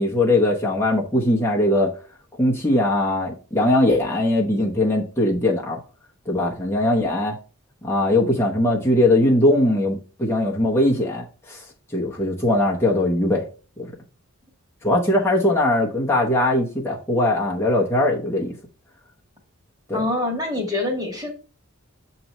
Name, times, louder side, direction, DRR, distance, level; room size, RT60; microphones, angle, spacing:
voice 1, 0.0-1.9 2.4-5.8 6.3-7.4 7.8-11.6 11.9-13.5 13.8-13.9 14.8-18.6 19.9-20.0, left 1 dB, 10° left, 0.9 m, -20 dB
voice 2, 19.9-21.3, left 2 dB, 15° right, 1.7 m, -25 dB
7.6 x 3.0 x 5.3 m
head